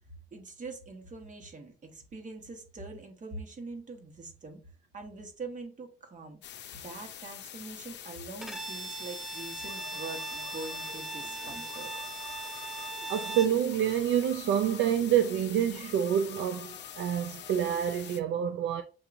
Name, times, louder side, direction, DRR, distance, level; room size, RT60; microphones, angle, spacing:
voice 1, 0.3-4.6 4.9-6.4 6.7-11.9 12.6-12.7 13.0-13.1, right 3 dB, 40° right, 1.3 m, -43 dB
sound 1, 6.4-18.2, left 10 dB, 60° left, 0.5 m, -45 dB
Bowed string instrument, 8.4-13.6, right 3 dB, ahead, 0.5 m, -39 dB
sound 2, 9.7-17.8, left 6 dB, 40° left, 1.0 m, -51 dB
voice 2, 12.8-18.8, right 9 dB, 70° right, 0.4 m, -28 dB
6.3 x 2.9 x 2.5 m
cardioid pair, 90°, 20 cm